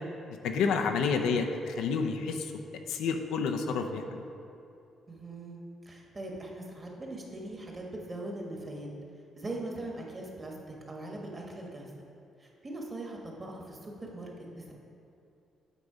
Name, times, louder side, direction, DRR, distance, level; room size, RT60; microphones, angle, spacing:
voice 1, 0.4-2.5 2.9-4.2, left 5 dB, 85° left, 5 dB, 0.5 m, -29 dB
voice 2, 5.1-8.9 9.4-11.9 12.4-14.7, right 2 dB, 30° right, 0 dB, 1.3 m, -41 dB
8.2 x 4.1 x 5.0 m, 2.7 s
cardioid pair, 90°, 0 cm